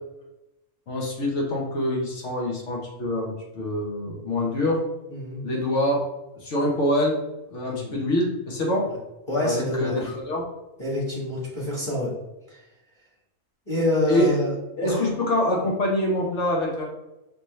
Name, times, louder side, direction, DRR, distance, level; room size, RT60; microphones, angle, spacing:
voice 1, 0.9-4.8 5.4-6.0 6.4-7.1 7.5-8.9 9.4-10.5 14.1-14.4 14.8-16.8, left 1 dB, 60° left, -1 dB, 1.3 m, -25 dB
voice 2, 5.1-5.4 7.6-7.9 9.3-10.1 10.8-12.1 12.5-12.6 13.7-14.5 14.8-15.0, left 1 dB, 20° left, -7 dB, 1.4 m, -27 dB
5.8 x 2.8 x 3.1 m, 0.99 s
omnidirectional pair, 1.5 m